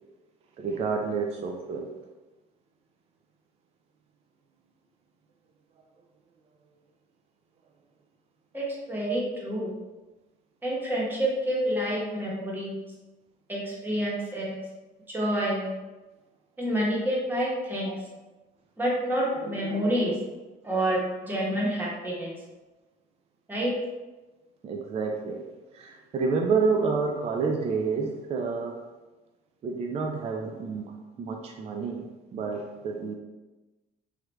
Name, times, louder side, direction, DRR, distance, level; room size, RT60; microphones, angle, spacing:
voice 1, 0.6-1.9 17.9-18.0 19.4-20.2 24.6-25.4 25.7-28.8 29.6-33.1, right 4 dB, 40° right, 2 dB, 0.3 m, -29 dB
voice 2, 8.5-9.7 10.6-12.8 13.5-14.6 15.1-15.7 16.6-17.9 18.8-20.1 20.6-22.3 23.5-23.7, right 1 dB, 10° right, -5 dB, 1.0 m, -28 dB
3.2 x 2.4 x 3.0 m, 1.1 s
cardioid pair, 110°, 17 cm